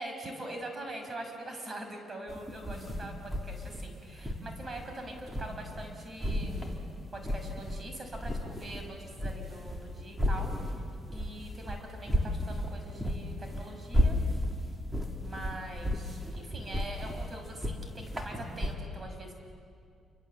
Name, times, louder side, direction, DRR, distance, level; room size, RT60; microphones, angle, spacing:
voice 1, 0.0-6.8 7.1-10.8 11.1-14.2 15.2-19.3, right 1 dB, 35° right, 4 dB, 5.8 m, -43 dB
sound 1, 2.3-5.9 6.2-7.8 8.1-18.7, equal, 5° right, 3.9 m, -33 dB
28.5 x 25.5 x 8.0 m, 2.3 s
cardioid pair, 90°, 0 cm